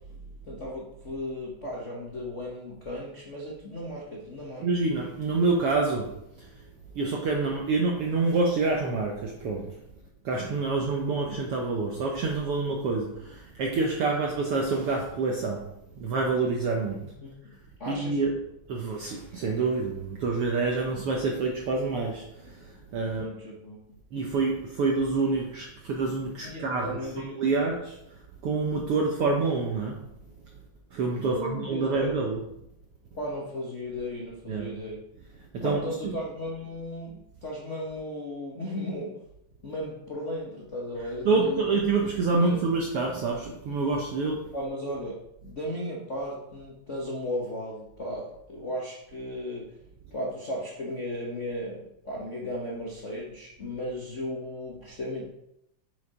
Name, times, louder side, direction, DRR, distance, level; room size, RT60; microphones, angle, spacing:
voice 1, 0.5-4.7 17.0-17.5 17.8-18.2 23.0-24.0 26.4-27.5 31.2-32.2 33.1-35.0 35.6-39.2 39.6-41.8 42.2-42.7 44.5-49.8 50.1-55.3, left 1 dB, 75° left, -3 dB, 0.6 m, -35 dB
voice 2, 4.6-6.5 6.9-9.7 10.2-15.7 16.0-17.1 17.9-18.4 18.7-23.3 24.1-28.0 28.4-30.0 30.9-32.4 34.5-34.7 35.5-36.1 41.2-44.4, right 3 dB, 70° right, 0 dB, 1.3 m, -27 dB
6.9 x 6.8 x 5.0 m, 0.81 s
omnidirectional pair, 3.8 m